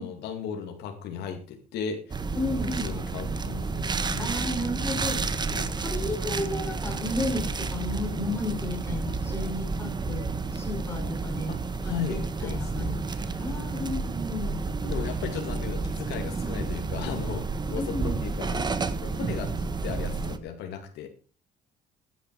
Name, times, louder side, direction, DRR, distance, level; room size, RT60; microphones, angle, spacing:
voice 1, 0.0-2.3 2.7-4.3 5.0-5.3 11.5-13.0 13.8-14.1 14.8-18.7 19.0-21.1, left 7 dB, 75° left, 4 dB, 2.3 m, -36 dB
sound 1, 2.1-20.4, right 4 dB, 25° right, 1.4 m, -30 dB
voice 2, 2.3-2.9 4.2-5.2 5.5-11.6 11.8-14.6 17.8-18.2, left 2 dB, 15° left, 0 dB, 6.4 m, -33 dB
14.5 x 10.5 x 4.7 m, 0.38 s
cardioid pair, 110°, 17 cm